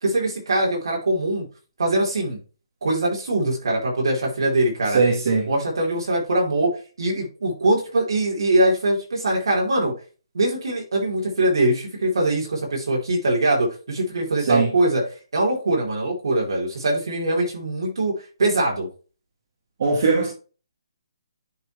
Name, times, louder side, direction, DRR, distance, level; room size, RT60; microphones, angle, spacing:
voice 1, 0.0-1.4 1.8-2.4 2.8-5.0 5.5-6.7 7.0-9.9 10.3-18.9, right 1 dB, 60° right, 3.8 m, -22 dB
voice 2, 4.9-5.5 14.5-14.7 19.8-20.3, right 4 dB, 35° right, 1.5 m, -19 dB
10.5 x 4.3 x 3.1 m
hypercardioid pair, 180°, 3 cm